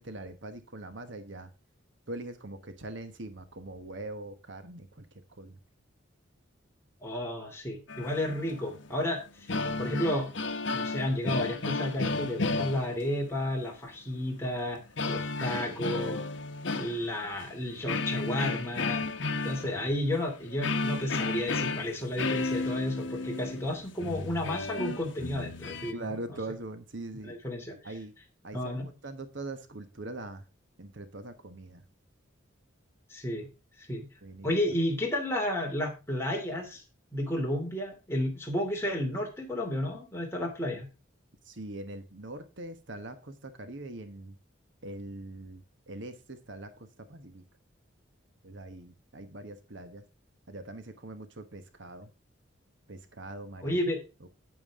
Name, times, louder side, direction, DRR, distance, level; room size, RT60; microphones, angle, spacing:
voice 1, 0.0-1.5 2.1-5.6 19.6-19.9 25.9-27.4 27.8-28.1 28.4-30.4 30.8-31.8 34.2-34.7 41.4-44.4 44.8-47.4 48.4-50.0 50.5-52.1 52.9-53.8 54.2-54.3, right 2 dB, 65° right, 9 dB, 1.2 m, -42 dB
voice 2, 7.0-9.2 9.8-10.3 10.7-14.8 15.1-16.2 16.7-19.0 19.4-25.9 27.2-27.7 28.5-28.9 33.1-33.5 33.8-34.0 34.4-36.8 37.1-40.9 53.6-54.0, left 1 dB, 10° left, 0 dB, 3.1 m, -32 dB
sound 1, 7.9-9.0 9.3-13.3 15.0-17.5 17.8-25.9, left 3 dB, 65° left, 1.1 m, -33 dB
9.3 x 9.1 x 3.7 m, 0.30 s
head